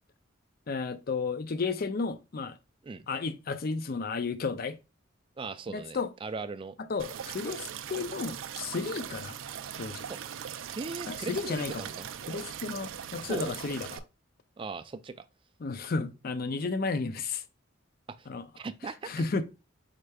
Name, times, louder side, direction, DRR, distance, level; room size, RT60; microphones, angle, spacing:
voice 1, 0.7-2.5 3.1-4.8 5.7-6.1 6.9-9.3 9.8-10.1 11.1-11.9 12.3-14.0 15.6-17.4 18.3-18.5 19.1-19.4, left 4 dB, 50° left, 0.5 m, -33 dB
voice 2, 5.4-6.7 10.7-12.1 13.2-13.5 14.6-15.2 18.6-19.1, right 4 dB, 25° right, 0.3 m, -38 dB
sound 1, 7.0-14.0, right 9 dB, 90° right, 0.4 m, -40 dB
4.9 x 4.3 x 2.2 m
head